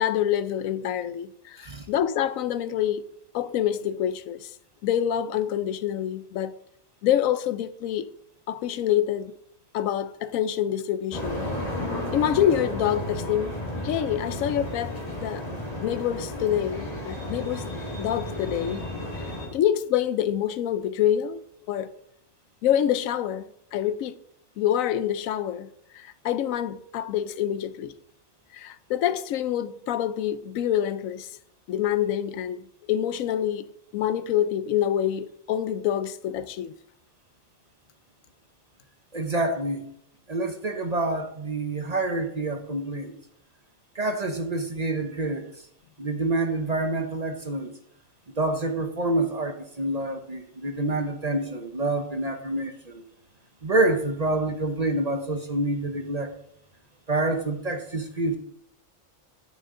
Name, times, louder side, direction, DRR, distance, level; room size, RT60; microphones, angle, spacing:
voice 1, 0.0-3.1 3.3-4.5 4.8-6.5 7.0-8.1 8.5-9.3 9.7-11.5 12.1-13.5 13.8-15.4 15.8-17.7 18.0-18.8 19.5-21.4 21.7-21.9 22.6-23.5 23.7-24.2 24.6-25.7 25.9-27.9 28.5-31.3 31.7-32.6 32.9-33.7 33.9-36.7, left 10 dB, 85° left, 1.0 m, -26 dB
sound 1, 11.1-19.5, left 1 dB, 30° left, 2.1 m, -33 dB
voice 2, 39.1-39.9 40.3-43.1 43.9-45.5 46.0-47.7 48.4-53.0 53.6-56.4 57.1-58.4, right 2 dB, 35° right, 0.8 m, -27 dB
9.2 x 9.1 x 3.7 m
omnidirectional pair, 1.4 m